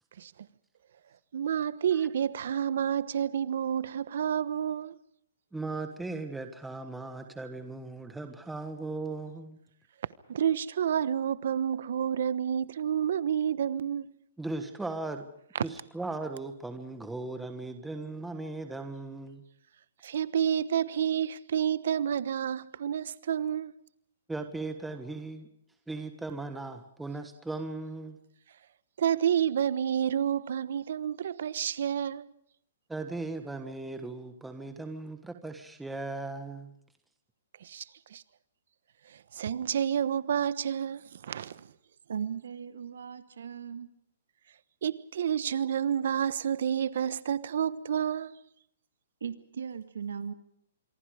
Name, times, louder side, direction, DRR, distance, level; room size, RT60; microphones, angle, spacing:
voice 1, 1.3-4.9 10.3-14.1 20.0-23.7 29.0-32.3 37.6-37.8 38.1-38.2 39.3-41.6 44.8-48.3, right 9 dB, 65° right, 1.1 m, -29 dB
voice 2, 5.5-9.6 14.4-15.3 15.6-19.4 24.3-25.5 25.9-28.2 32.9-36.7, right 3 dB, 5° right, 1.5 m, -38 dB
voice 3, 42.1-43.9 49.2-50.3, right 7 dB, 85° right, 1.7 m, -37 dB
26.5 x 23.5 x 5.0 m
hypercardioid pair, 155°, 0 cm